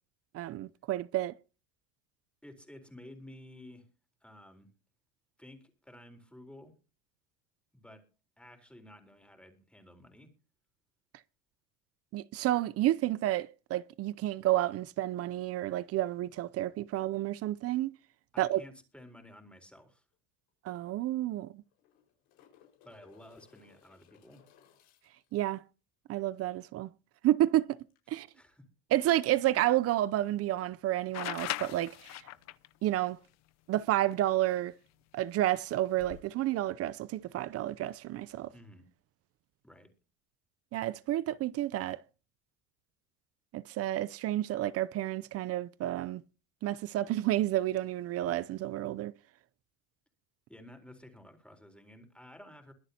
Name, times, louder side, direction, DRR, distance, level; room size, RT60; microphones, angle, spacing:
voice 1, 0.3-1.3 12.1-17.9 18.4-18.6 20.6-21.6 25.3-25.6 26.1-26.9 27.2-27.8 28.1-28.3 28.9-32.2 32.8-33.2 33.7-34.7 35.1-38.5 40.7-42.0 43.5-46.2 46.6-49.1, right 14 dB, 45° right, 0.6 m, -30 dB
voice 2, 2.4-3.9 4.2-4.7 5.4-6.7 7.7-8.0 8.4-10.3 18.3-20.0 22.8-24.4 28.1-28.7 38.5-38.9 39.6-39.9 50.5-52.7, left 1 dB, 5° left, 4.0 m, -53 dB
sound 1, 20.1-20.2 20.5-20.6 21.6-25.3 27.9-28.0, left 10 dB, 80° left, 5.1 m, -63 dB
sound 2, 31.1-32.7 34.6-34.7 35.9-36.2, left 16 dB, 50° left, 0.7 m, -38 dB
23.0 x 9.3 x 2.8 m
supercardioid pair, 100°, 33 cm